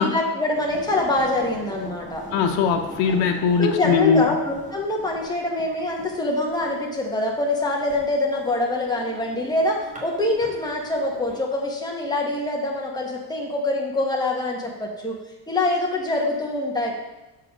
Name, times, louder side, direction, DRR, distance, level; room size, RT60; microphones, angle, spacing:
voice 1, 0.0-2.3 3.6-15.2 15.5-16.9, left 2 dB, 10° left, -2 dB, 1.4 m, -25 dB
sound 1, 0.5-11.4, right 2 dB, 15° right, 1.7 m, -42 dB
voice 2, 2.3-4.3, left 6 dB, 80° left, 3 dB, 1.0 m, -20 dB
6.8 x 4.8 x 6.1 m, 1.0 s
cardioid pair, 135°, 44 cm